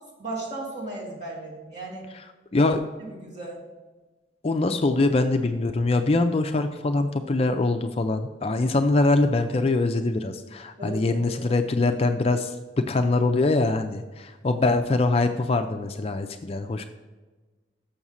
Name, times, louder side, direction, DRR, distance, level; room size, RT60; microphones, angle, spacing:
voice 1, 0.2-2.0 3.0-3.6 10.8-11.4, right 2 dB, 40° right, -6 dB, 2.6 m, -36 dB
voice 2, 4.4-16.8, left 2 dB, 30° left, 7 dB, 0.4 m, -23 dB
7.1 x 6.1 x 5.6 m, 1.3 s
head